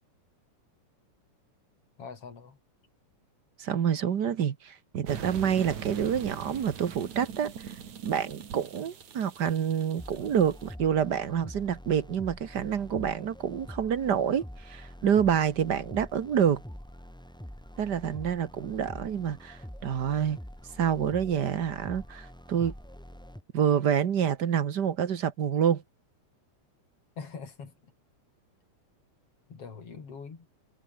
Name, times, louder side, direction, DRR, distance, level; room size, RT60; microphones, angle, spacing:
voice 1, 2.0-2.6 27.2-27.9 29.5-30.5, left 5 dB, 50° left, 4.4 m, -43 dB
voice 2, 3.6-16.6 17.8-20.4 20.8-22.7 23.5-25.8, right 8 dB, 50° right, 1.3 m, -27 dB
sound 1, 5.1-10.7, right 7 dB, 70° right, 3.9 m, -42 dB
sound 2, 10.0-23.4, equal, ahead, 2.8 m, -45 dB
omnidirectional pair, 3.4 m